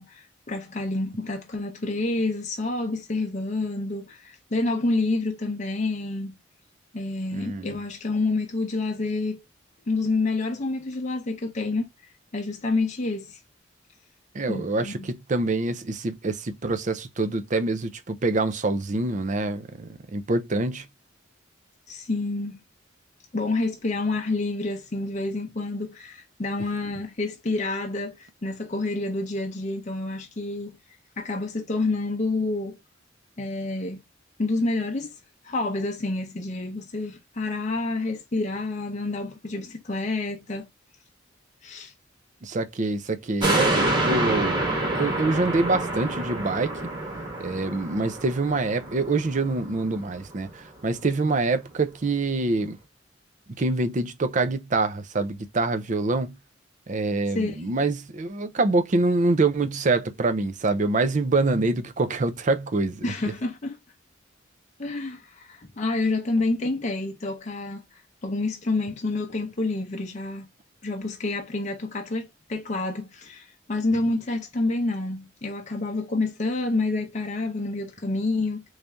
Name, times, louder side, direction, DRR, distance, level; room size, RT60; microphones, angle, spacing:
voice 1, 0.0-6.4 6.9-9.4 9.9-11.9 12.3-13.4 14.5-15.1 21.9-22.6 23.3-30.8 31.2-32.8 33.4-34.0 34.4-35.2 35.4-40.7 41.6-41.9 57.3-57.8 63.0-63.8 64.8-70.5 70.8-78.6, left 2 dB, 35° left, 0.6 m, -28 dB
voice 2, 7.3-7.7 14.3-20.9 42.4-46.8 47.4-52.8 53.6-56.4 56.9-63.1, right 3 dB, 40° right, 0.5 m, -25 dB
sound 1, 43.4-50.1 50.5-50.6, right 2 dB, 25° right, 1.2 m, -27 dB
3.2 x 2.6 x 3.4 m
head